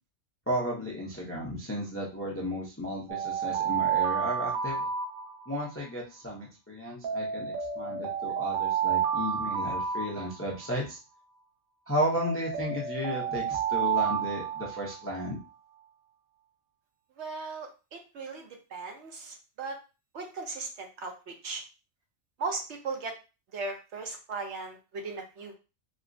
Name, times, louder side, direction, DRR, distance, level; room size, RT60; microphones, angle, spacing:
voice 1, 0.5-4.9 5.5-11.0 11.9-15.4, equal, 20° left, -3 dB, 0.4 m, -34 dB
Alarm, 3.1-5.7 7.0-10.7 12.0-15.3, right 7 dB, 90° right, 1.0 m, -30 dB
voice 2, 17.2-19.8 20.1-21.6 22.4-23.1 23.5-25.6, right 4 dB, 65° right, 3 dB, 0.9 m, -37 dB
4.1 x 2.0 x 2.5 m, 0.30 s
omnidirectional pair, 1.4 m